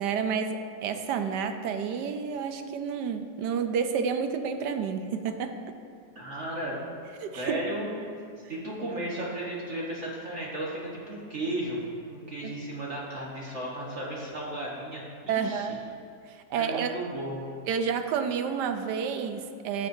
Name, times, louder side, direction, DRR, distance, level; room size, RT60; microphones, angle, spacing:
voice 1, 0.0-5.6 7.2-7.6 12.4-12.5 15.3-15.8 16.3-16.9 17.7-19.9, right 6 dB, 80° right, 7 dB, 1.2 m, -30 dB
voice 2, 6.1-6.8 7.3-7.9 8.5-11.8 12.1-15.7 16.5-17.4, right 1 dB, 45° right, -5 dB, 1.5 m, -34 dB
15.5 x 6.8 x 2.7 m, 2.3 s
omnidirectional pair, 1.8 m